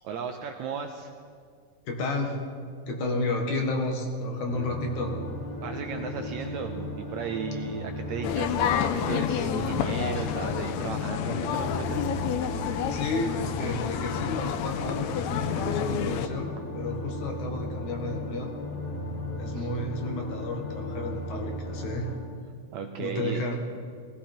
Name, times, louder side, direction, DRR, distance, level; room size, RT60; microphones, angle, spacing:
voice 1, 0.0-1.1 5.6-12.1 19.5-19.7 22.7-23.4, right 6 dB, 75° right, 5 dB, 1.7 m, -35 dB
voice 2, 1.8-2.4 2.9-5.1 12.9-18.5 19.4-22.1 23.0-23.6, left 2 dB, 65° left, 2 dB, 2.9 m, -32 dB
sound 1, 4.5-22.2, left 1 dB, 40° left, 2.6 m, -36 dB
sound 2, 8.2-16.3, left 9 dB, 85° left, 1.6 m, -29 dB
18.5 x 16.5 x 4.4 m, 2.1 s
omnidirectional pair, 3.9 m